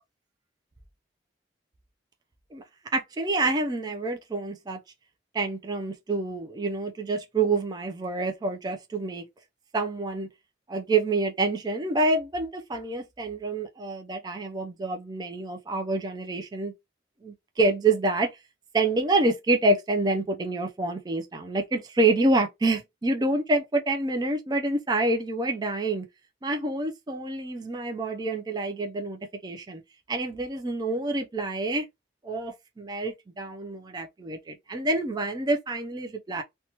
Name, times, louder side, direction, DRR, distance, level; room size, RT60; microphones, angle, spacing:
voice 1, 2.9-4.8 5.3-9.2 9.7-10.3 10.7-16.7 17.2-18.3 18.7-26.1 26.4-29.8 30.1-31.9 32.2-36.4, right 2 dB, 25° right, 0.3 m, -27 dB
2.8 x 2.2 x 2.7 m
head